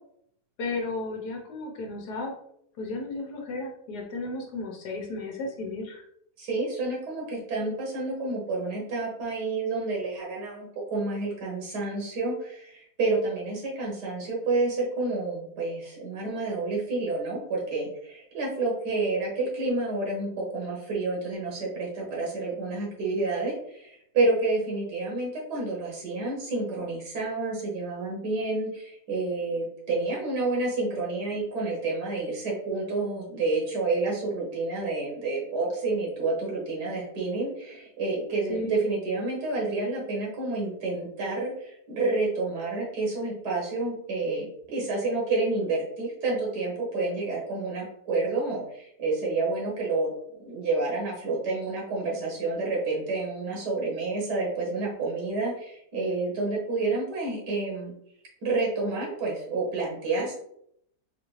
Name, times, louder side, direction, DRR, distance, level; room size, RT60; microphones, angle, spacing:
voice 1, 0.6-2.3 2.8-6.0 38.5-38.8, left 2 dB, 85° left, 0 dB, 1.3 m, -34 dB
voice 2, 6.4-50.1 50.4-57.9 58.4-60.3, right 3 dB, 85° right, -2 dB, 1.6 m, -29 dB
4.0 x 2.5 x 3.1 m, 0.72 s
omnidirectional pair, 1.7 m